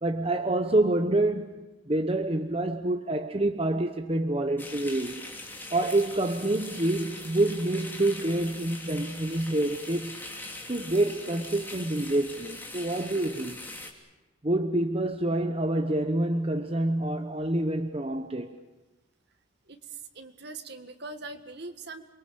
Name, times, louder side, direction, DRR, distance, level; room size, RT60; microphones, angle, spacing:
voice 1, 0.0-5.2 5.7-10.2 10.7-13.6 14.4-18.6, right 1 dB, 30° right, 0.9 m, -27 dB
sound 1, 4.6-13.9, left 2 dB, 10° left, 2.9 m, -42 dB
voice 2, 19.7-22.1, right 3 dB, 50° right, 1.8 m, -42 dB
28.5 x 22.0 x 6.9 m
head